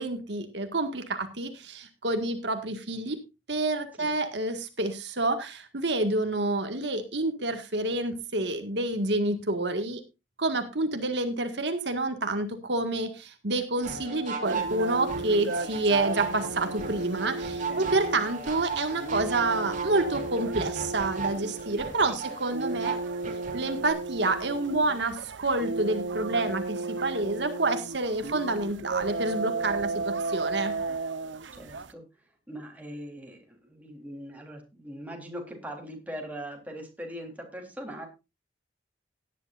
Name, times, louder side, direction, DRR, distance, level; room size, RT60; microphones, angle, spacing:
voice 1, 0.0-3.2 3.5-10.0 10.4-22.9 23.5-30.8, right 2 dB, 70° right, 6 dB, 1.8 m, -28 dB
sound 1, 13.8-23.9, right 4 dB, 45° right, 2.9 m, -36 dB
sound 2, 14.4-31.9, right 3 dB, 90° right, 0.9 m, -34 dB
voice 2, 31.5-32.0 32.5-38.1, equal, 10° right, 1 dB, 3.7 m, -41 dB
17.5 x 10.5 x 2.5 m, 0.26 s
head